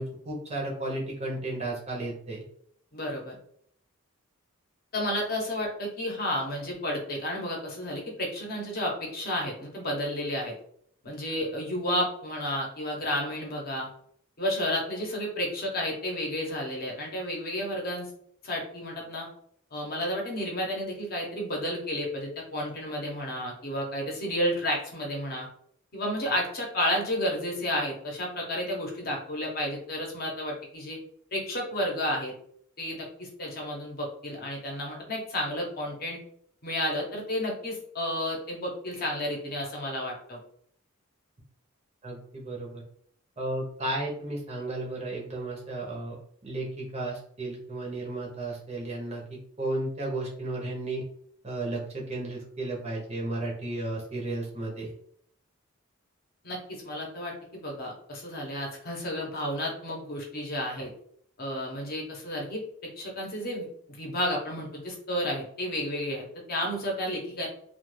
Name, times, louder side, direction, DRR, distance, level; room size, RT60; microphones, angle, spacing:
voice 1, 0.0-2.4 42.0-42.8 43.4-46.2 46.4-51.0 51.4-54.9, right 2 dB, 30° right, -2 dB, 0.6 m, -33 dB
voice 2, 2.9-3.4 4.9-10.5 11.0-13.9 14.4-18.1 18.4-19.3 19.7-25.5 25.9-31.0 31.3-32.3 32.8-36.2 36.6-40.4 56.4-60.9 61.4-63.7 64.0-67.5, left 1 dB, 45° left, -1 dB, 0.8 m, -31 dB
2.3 x 2.3 x 3.1 m, 0.63 s
head